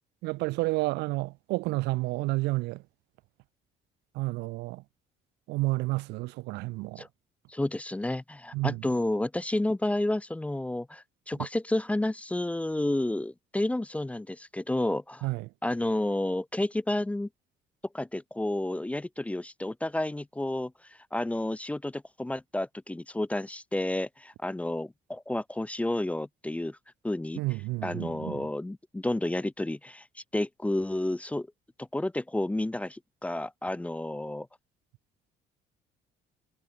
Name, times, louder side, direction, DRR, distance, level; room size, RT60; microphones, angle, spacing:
voice 1, 0.2-2.8 4.1-4.8 5.5-7.0 8.5-8.8 15.2-15.5 27.4-28.4, right 22 dB, 90° right, 0.7 m, -30 dB
voice 2, 7.5-15.3 15.6-17.3 17.9-26.8 27.0-27.4 27.8-31.5 31.8-34.5, left 1 dB, 10° left, 0.5 m, -31 dB
cardioid pair, 110°, 17 cm